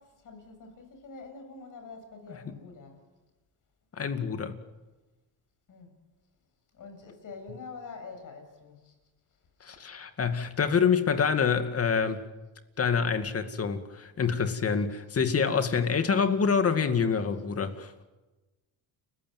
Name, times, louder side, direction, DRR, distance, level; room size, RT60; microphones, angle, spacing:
voice 1, 0.0-3.0 5.7-5.9 6.7-8.9 9.7-9.8, left 4 dB, 55° left, 6 dB, 7.1 m, -46 dB
voice 2, 3.9-4.6 9.6-12.2 12.8-17.9, left 6 dB, 35° left, 8 dB, 2.3 m, -26 dB
30.0 x 15.5 x 9.3 m, 1.2 s
cardioid pair, 110°, 39 cm